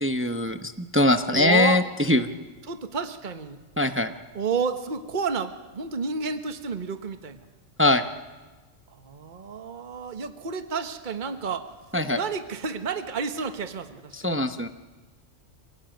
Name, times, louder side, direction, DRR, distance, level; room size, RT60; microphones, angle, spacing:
voice 1, 0.0-1.8 2.1-2.3 3.8-4.1 7.8-8.0 11.9-12.2 14.2-14.7, left 2 dB, 10° right, 8 dB, 0.8 m, -22 dB
voice 2, 1.3-1.8 2.6-3.6 4.3-7.4 8.9-11.7 12.2-14.1, right 5 dB, 40° right, 8 dB, 1.3 m, -30 dB
27.5 x 17.5 x 9.1 m, 1.3 s
omnidirectional pair, 1.3 m